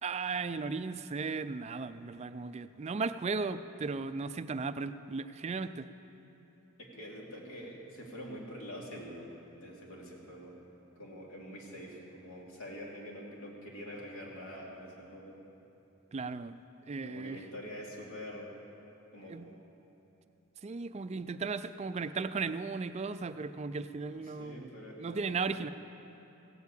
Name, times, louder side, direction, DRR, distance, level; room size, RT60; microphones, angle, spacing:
voice 1, 0.0-5.9 16.1-16.6 16.9-17.4 19.3-19.5 20.6-24.7 25.0-25.7, right 4 dB, 30° right, 12 dB, 0.3 m, -36 dB
voice 2, 6.8-10.5 11.0-15.4 17.1-18.5 19.1-19.4 24.2-25.4, equal, 65° left, -2 dB, 2.6 m, -45 dB
16.0 x 8.3 x 8.3 m, 3.0 s
head